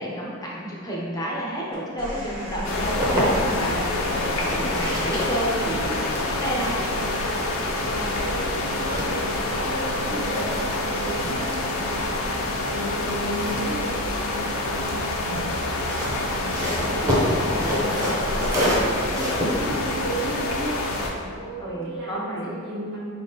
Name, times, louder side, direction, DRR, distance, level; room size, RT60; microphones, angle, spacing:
voice 1, 0.0-6.7 15.2-15.6 16.3-18.7 21.6-22.6, equal, 15° left, -5 dB, 0.5 m, -31 dB
sound 1, 1.7-14.3 15.6-16.0, left 1 dB, 85° right, 0.9 m, -39 dB
sound 2, 2.6-21.1, left 2 dB, 70° left, 0.5 m, -27 dB
sound 3, 2.6-3.7 4.3-9.7 10.0-14.6 15.6-21.2, equal, 15° right, 0.7 m, -29 dB
voice 2, 7.8-15.1 19.0-23.0, right 1 dB, 55° right, -6 dB, 1.1 m, -34 dB
4.5 x 3.5 x 2.7 m, 2.2 s
head